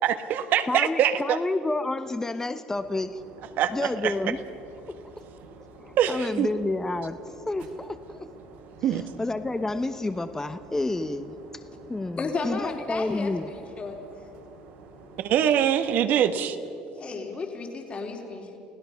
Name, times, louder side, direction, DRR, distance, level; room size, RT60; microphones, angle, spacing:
voice 1, 0.0-1.4 3.6-4.1 6.0-6.5 8.8-9.0 15.2-16.6, right 9 dB, 65° right, 9 dB, 1.4 m, -23 dB
voice 2, 0.7-3.2 3.7-4.4 4.9-5.0 5.8-7.2 7.5-8.3 8.9-11.3 11.9-13.5, left 2 dB, 15° left, 10 dB, 0.9 m, -29 dB
sound 1, 2.7-15.4, right 3 dB, 85° right, 3.8 m, -49 dB
voice 3, 12.2-14.0 16.9-18.6, left 4 dB, 35° left, 2 dB, 3.5 m, -33 dB
29.5 x 16.5 x 5.9 m, 2.9 s
supercardioid pair, 90°, 3 cm